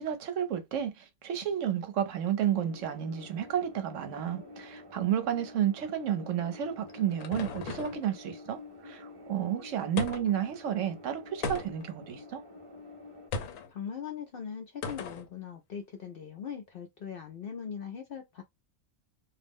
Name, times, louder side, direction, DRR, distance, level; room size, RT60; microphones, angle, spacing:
voice 1, 0.0-12.4, right 10 dB, 75° right, 1.0 m, -31 dB
sound 1, 2.4-13.3, left 2 dB, 35° right, 0.5 m, -49 dB
sound 2, 6.5-8.1 10.0-10.5 11.4-12.0 13.3-13.7 14.8-15.3, left 4 dB, 80° left, 1.0 m, -37 dB
voice 2, 13.7-18.4, left 7 dB, 65° left, 0.6 m, -40 dB
2.5 x 2.0 x 3.3 m
omnidirectional pair, 1.4 m